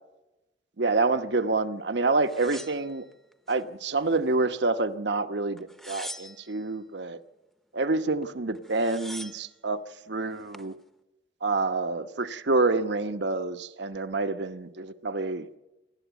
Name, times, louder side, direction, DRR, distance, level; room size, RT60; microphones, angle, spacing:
voice 1, 0.8-3.0 3.5-7.2 7.7-9.8 10.1-10.8 11.4-15.6, right 3 dB, 70° right, 1.0 m, -27 dB
sound 1, 2.3-3.6 4.1-4.8 5.6-6.7 8.2-8.3 8.5-9.5 10.2-10.7, equal, ahead, 0.7 m, -43 dB
26.5 x 12.0 x 8.2 m
head